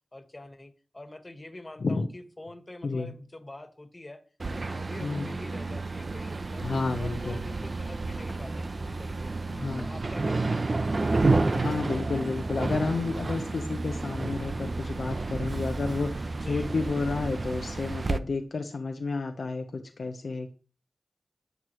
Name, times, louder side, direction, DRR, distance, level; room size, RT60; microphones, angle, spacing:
voice 1, 0.1-4.2 4.5-6.7 7.0-9.5 9.8-11.2 16.3-16.7, left 2 dB, 35° left, 7 dB, 1.7 m, -45 dB
voice 2, 2.8-3.1 5.0-5.3 6.6-7.4 9.5-9.9 11.5-20.5, left 3 dB, 85° left, 5 dB, 0.9 m, -31 dB
sound 1, 4.4-18.2, right 3 dB, 60° right, 0.7 m, -30 dB
sound 2, 8.3-8.7 9.3-9.5 9.8-10.3 10.8-11.6 12.7-13.2, right 1 dB, 20° right, 2.6 m, -48 dB
11.0 x 8.0 x 3.1 m, 0.38 s
wide cardioid pair, 55°, 0 cm